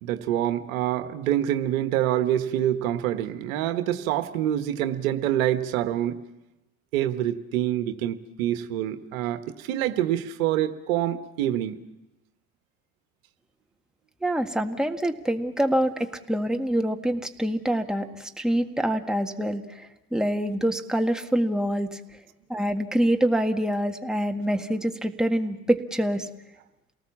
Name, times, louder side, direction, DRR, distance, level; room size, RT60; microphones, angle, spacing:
voice 1, 0.0-6.2 6.9-11.7, right 12 dB, 75° right, 9 dB, 1.3 m, -26 dB
voice 2, 14.2-22.0 22.5-26.3, right 1 dB, ahead, 4 dB, 1.7 m, -26 dB
28.5 x 18.5 x 7.2 m, 0.99 s
hypercardioid pair, 65°, 41 cm